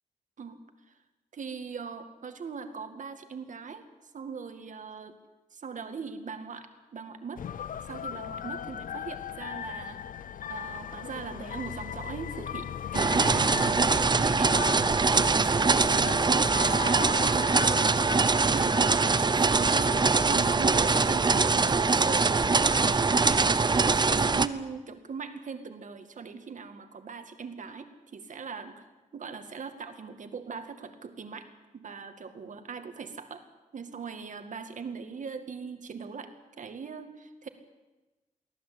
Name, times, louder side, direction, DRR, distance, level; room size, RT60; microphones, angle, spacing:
voice 1, 1.3-3.9 4.1-5.2 5.5-7.5 7.9-10.2 10.5-28.9 29.1-31.5 31.7-33.4 33.7-37.5, right 5 dB, 65° right, 8 dB, 2.1 m, -40 dB
sound 1, 7.4-20.0, left 9 dB, 90° left, 0.6 m, -38 dB
sound 2, 12.9-24.5, right 4 dB, 30° right, 0.8 m, -23 dB
24.0 x 16.0 x 8.6 m, 1.1 s
wide cardioid pair, 115°, 14 cm